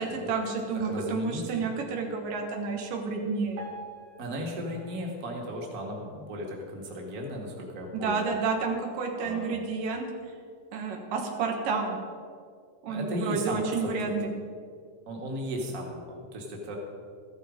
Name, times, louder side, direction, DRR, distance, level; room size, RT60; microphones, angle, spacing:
voice 1, 0.0-3.7 7.9-10.0 10.7-12.0 12.8-14.3, right 4 dB, 85° right, 2 dB, 3.1 m, -30 dB
voice 2, 0.7-1.7 4.2-8.3 9.2-9.7 12.9-14.1 15.1-16.8, equal, 30° right, 0 dB, 2.0 m, -36 dB
Piano, 3.6-6.7 7.2-7.3 7.6-7.7 8.5-8.6 9.1-9.2, right 1 dB, 65° right, 3.2 m, -48 dB
14.0 x 11.5 x 5.2 m, 2.2 s
omnidirectional pair, 3.7 m